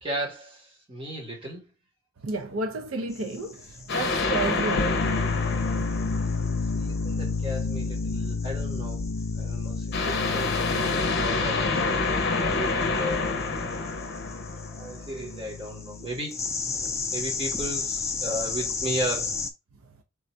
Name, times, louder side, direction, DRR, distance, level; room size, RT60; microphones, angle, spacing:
voice 1, 0.0-1.6 6.7-9.0 9.3-11.9 12.3-13.3 14.7-16.4 17.1-19.4, equal, 25° right, 1.3 m, -35 dB
voice 2, 2.2-5.2 19.8-19.9, right 3 dB, 70° right, 0.6 m, -32 dB
sound 1, 3.1-19.5, left 4 dB, 15° left, 0.3 m, -36 dB
sound 2, 3.9-7.0 9.9-15.1, left 3 dB, 50° left, 0.7 m, -28 dB
sound 3, 4.7-16.2, left 4 dB, 85° left, 0.4 m, -31 dB
3.7 x 2.6 x 4.3 m
head